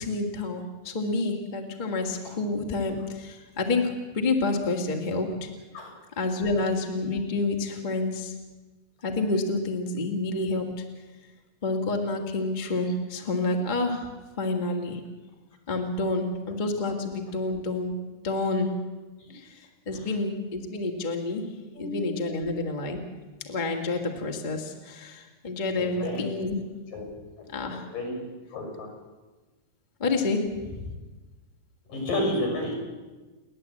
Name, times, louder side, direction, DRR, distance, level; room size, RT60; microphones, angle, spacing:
voice 1, 0.0-5.5 6.1-8.3 9.0-10.7 11.6-14.1 14.4-15.0 15.7-17.9 18.2-18.7 19.3-21.4 21.8-23.0 23.4-26.5 27.5-27.8 30.0-30.9, left 3 dB, 20° left, 2 dB, 1.6 m, -28 dB
voice 2, 21.8-22.4 25.8-26.2 26.9-27.1 27.7-28.2 28.5-28.9 31.9-32.7, left 1 dB, 65° left, 1 dB, 7.6 m, -31 dB
30.0 x 11.0 x 8.6 m, 1.2 s
omnidirectional pair, 4.1 m